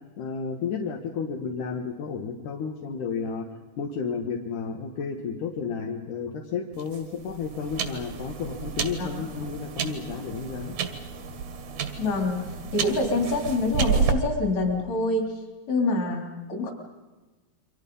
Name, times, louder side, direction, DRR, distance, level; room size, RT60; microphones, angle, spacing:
voice 1, 0.2-3.5 3.8-10.8, left 5 dB, 80° left, 1 dB, 3.0 m, -32 dB
sound 1, 6.7-14.1, right 6 dB, 75° right, 3.2 m, -31 dB
voice 2, 12.0-15.3 15.7-16.7, left 2 dB, 60° left, 3 dB, 4.7 m, -26 dB
29.5 x 24.5 x 5.5 m, 1.2 s
omnidirectional pair, 3.6 m